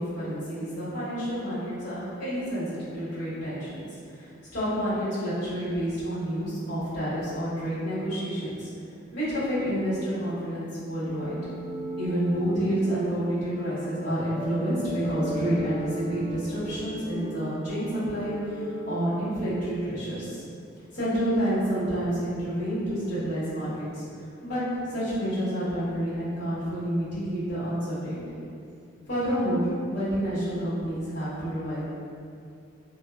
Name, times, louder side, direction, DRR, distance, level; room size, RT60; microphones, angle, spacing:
voice 1, 0.0-8.7 9.1-11.3 12.0-20.4 20.9-24.0 24.4-24.6 24.9-28.4 29.1-31.8, equal, 70° left, -13 dB, 1.5 m, -29 dB
sound 1, 11.0-20.0, right 1 dB, 40° right, 0.8 m, -37 dB
2.7 x 2.3 x 2.4 m, 2.4 s
head